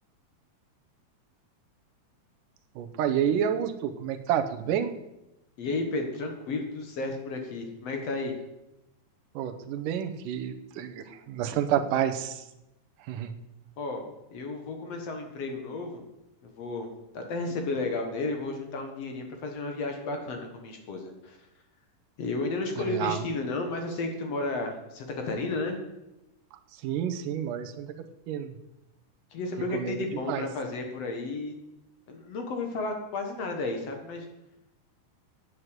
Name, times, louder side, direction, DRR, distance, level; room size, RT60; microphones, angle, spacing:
voice 1, 2.8-4.9 9.4-12.4 13.1-13.4 22.8-23.2 26.8-27.9 28.3-28.5 29.7-30.5, right 9 dB, 85° right, 7 dB, 2.4 m, -29 dB
voice 2, 5.6-8.3 13.8-14.0 14.3-16.0 16.4-16.9 17.1-21.4 22.2-25.8 29.3-31.5 32.1-34.3, left 3 dB, 55° left, 4 dB, 2.3 m, -33 dB
9.4 x 7.5 x 8.0 m, 0.92 s
omnidirectional pair, 3.7 m